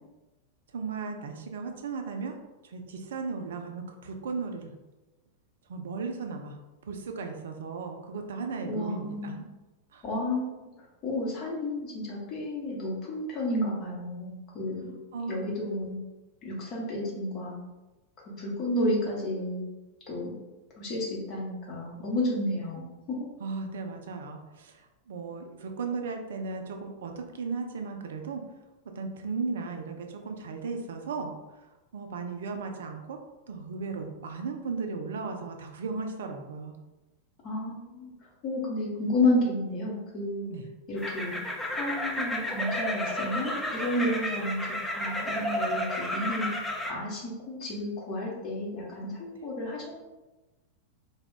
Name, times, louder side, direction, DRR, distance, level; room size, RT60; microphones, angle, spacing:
voice 1, 0.7-2.3 2.6-4.7 5.7-6.5 6.8-9.4 9.9-10.0 15.1-15.4 23.4-24.8 25.1-28.4 29.0-31.3 31.9-33.2 33.5-36.7 40.5-40.6, right 4 dB, 60° right, 4 dB, 0.4 m, -36 dB
voice 2, 8.6-9.4 10.0-10.7 11.0-14.9 15.3-16.0 16.4-17.6 18.4-19.6 20.1-20.3 20.8-23.2 37.4-38.1 38.4-40.5 40.9-41.4 41.7-46.5 46.9-50.0, left 1 dB, 35° left, -4 dB, 0.9 m, -31 dB
sound 1, 41.0-46.9, left 1 dB, 5° left, 0.4 m, -32 dB
2.3 x 2.0 x 3.6 m, 1.1 s
figure-of-eight pair, 90°, 0 cm